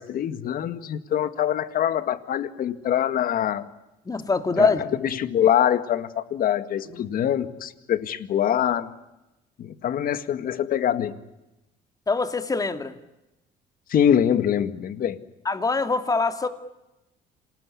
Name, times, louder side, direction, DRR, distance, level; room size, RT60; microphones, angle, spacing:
voice 1, 0.0-3.7 4.6-8.9 9.6-11.2 13.9-15.2, left 10 dB, 60° left, 12 dB, 1.9 m, -24 dB
voice 2, 4.1-4.8 12.1-12.9 15.4-16.5, left 3 dB, 20° left, 8 dB, 2.6 m, -23 dB
28.0 x 20.0 x 9.8 m, 0.97 s
cardioid pair, 110°, 17 cm